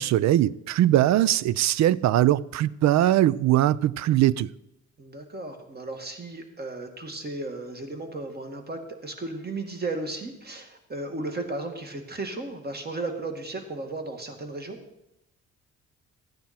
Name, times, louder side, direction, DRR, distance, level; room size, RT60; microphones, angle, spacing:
voice 1, 0.0-4.5, right 13 dB, 65° right, 0.5 m, -21 dB
voice 2, 5.0-14.8, right 2 dB, 35° right, 2.1 m, -35 dB
13.5 x 9.4 x 4.4 m
cardioid pair, 90°, 30 cm